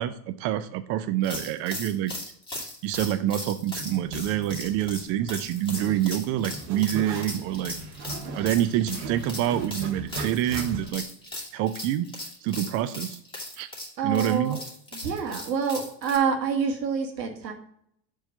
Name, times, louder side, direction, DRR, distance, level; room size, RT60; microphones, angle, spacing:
voice 1, 0.0-2.1 2.8-7.7 8.3-11.0 11.5-12.1 12.4-13.2 13.6-13.7 14.0-14.6, right 12 dB, 30° right, 11 dB, 0.4 m, -26 dB
sound 1, 1.2-16.2, left 1 dB, 10° left, 2.6 m, -38 dB
Zipper (clothing), 3.8-11.0, right 2 dB, 50° right, 1.7 m, -39 dB
voice 2, 14.0-14.6 14.9-17.5, right 6 dB, 80° right, 3 dB, 1.7 m, -27 dB
7.1 x 3.7 x 6.4 m, 0.67 s
hypercardioid pair, 90°, 49 cm